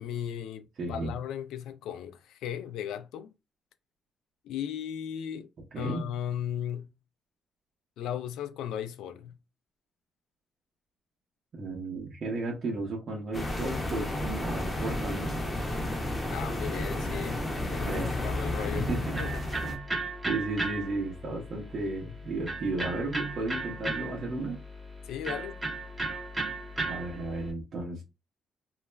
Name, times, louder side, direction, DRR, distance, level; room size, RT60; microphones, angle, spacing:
voice 1, 0.0-3.3 4.4-5.5 5.8-6.9 8.0-9.4 16.3-17.4 17.7-18.9 19.2-19.4 25.1-25.6, left 9 dB, 90° left, 0.3 m, -36 dB
voice 2, 0.8-1.1 5.7-6.1 11.5-15.4 17.8-18.1 18.6-19.2 19.6-19.8 20.3-24.6 26.8-28.0, right 2 dB, 55° right, 0.8 m, -34 dB
sound 1, 13.3-19.8, left 1 dB, 15° left, 0.7 m, -32 dB
Electric guitar, 18.4-27.5, right 2 dB, 20° right, 0.7 m, -36 dB
2.3 x 2.1 x 3.2 m
cardioid pair, 90°, 0 cm